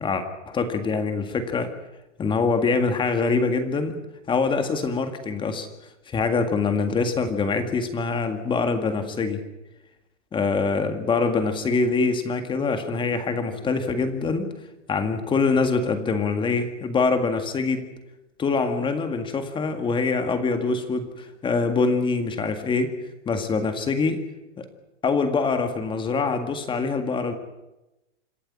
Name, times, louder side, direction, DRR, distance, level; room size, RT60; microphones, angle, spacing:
voice 1, 0.0-1.7 2.2-4.0 4.3-5.7 6.1-9.4 10.3-14.5 14.9-17.9 18.4-22.9 23.3-24.2 24.6-24.7 25.0-27.3, left 4 dB, 15° left, 8 dB, 1.8 m, -24 dB
27.0 x 11.5 x 9.9 m, 0.99 s
hypercardioid pair, 150°, 36 cm